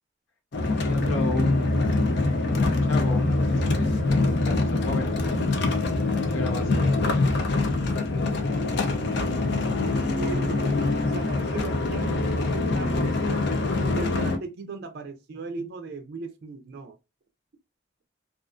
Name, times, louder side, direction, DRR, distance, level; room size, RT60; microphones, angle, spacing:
sound 1, 0.5-14.4, left 2 dB, 55° left, 0.4 m, -24 dB
voice 1, 0.8-1.7 2.4-5.2 6.1-7.0 7.6-8.1 8.5-9.0, left 2 dB, 80° left, 0.9 m, -34 dB
voice 2, 9.8-13.5 14.0-16.9, right 3 dB, 55° right, 0.4 m, -37 dB
2.4 x 2.4 x 2.3 m
head